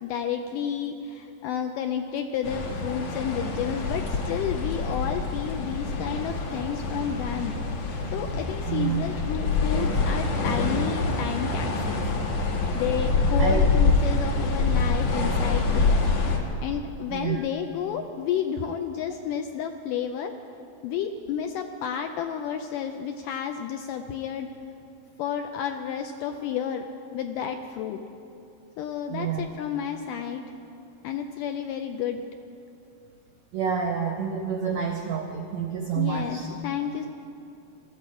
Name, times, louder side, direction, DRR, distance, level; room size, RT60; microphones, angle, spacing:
voice 1, 0.0-7.6 8.1-12.1 12.7-16.0 16.6-20.3 20.8-24.5 25.2-26.9 27.1-28.0 28.8-30.4 31.0-32.2 35.9-37.1, left 8 dB, 80° left, 5 dB, 1.9 m, -31 dB
sound 1, 2.4-16.4, left 3 dB, 60° left, 2.6 m, -26 dB
voice 2, 8.7-9.0 13.4-13.6 17.1-17.4 29.1-29.5 33.5-36.5, right 7 dB, 80° right, 3 dB, 1.5 m, -28 dB
19.5 x 13.5 x 5.0 m, 2.9 s
omnidirectional pair, 4.4 m